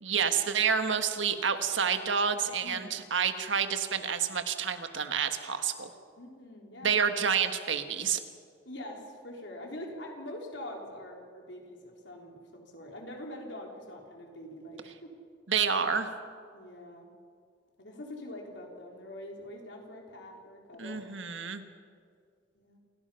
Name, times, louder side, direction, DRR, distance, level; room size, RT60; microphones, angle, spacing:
voice 1, 0.0-5.9 6.8-8.2 15.5-16.1 20.8-21.6, right 7 dB, 85° right, 8 dB, 1.6 m, -29 dB
voice 2, 2.6-3.0 6.2-7.1 8.7-15.1 16.5-17.1 17.8-21.0 22.5-22.8, left 1 dB, 70° left, 1 dB, 3.9 m, -44 dB
28.5 x 17.0 x 5.8 m, 2.1 s
head